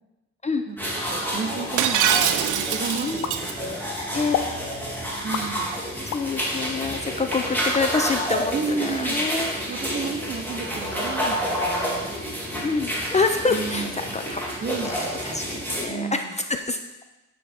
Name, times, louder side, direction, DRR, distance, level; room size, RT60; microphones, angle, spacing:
sound 1, 0.8-15.9, equal, 5° left, 2.1 m, -29 dB
voice 1, 1.1-3.9 5.2-5.8 8.5-9.2 9.7-12.2 13.5-14.1 14.6-16.4, right 5 dB, 35° right, 6 dB, 0.9 m, -33 dB
Shatter, 1.8-3.5, right 9 dB, 85° right, 0.6 m, -23 dB
sound 2, 3.2-3.9 4.3-4.6 5.3-6.3 6.8-7.9, left 9 dB, 65° left, 0.6 m, -31 dB
voice 2, 4.1-4.5 6.1-9.9 12.6-14.4 14.8-17.0, left 4 dB, 25° left, 6 dB, 0.5 m, -27 dB
9.0 x 4.6 x 4.3 m, 1.0 s
cardioid pair, 90°, 30 cm